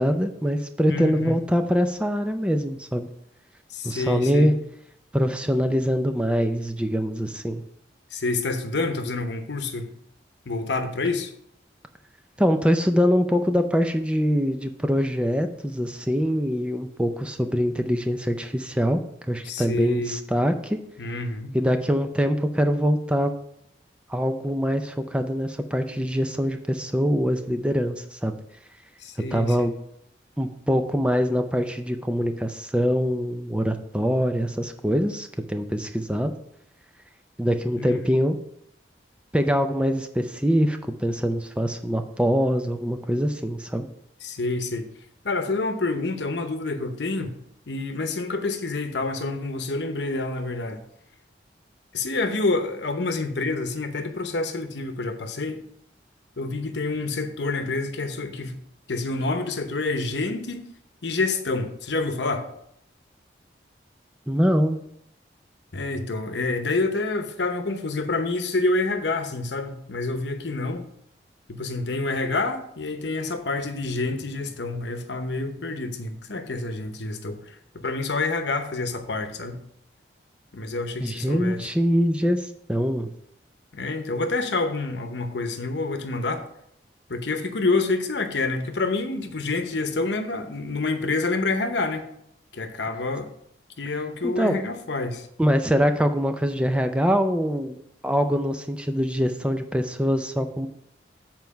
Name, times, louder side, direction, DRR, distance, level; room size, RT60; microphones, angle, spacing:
voice 1, 0.0-3.1 3.8-4.5 5.1-7.6 12.4-19.0 19.3-20.8 21.5-23.4 24.1-28.4 29.3-29.7 30.4-36.3 37.4-38.4 39.3-43.9 64.3-64.8 81.0-83.1 94.2-94.6 95.4-100.7, equal, 5° right, 0.4 m, -24 dB
voice 2, 0.9-1.4 3.7-4.6 8.1-9.9 10.4-11.3 19.4-20.2 21.0-21.6 29.0-29.6 37.8-38.0 44.2-44.9 45.2-47.4 47.7-50.8 51.9-55.6 56.4-58.5 58.9-60.7 61.0-62.5 65.7-70.9 71.5-79.6 80.5-81.7 83.7-86.4 87.1-92.1 92.5-93.3 93.8-95.3, left 3 dB, 75° left, 0.9 m, -28 dB
7.4 x 4.6 x 5.7 m
head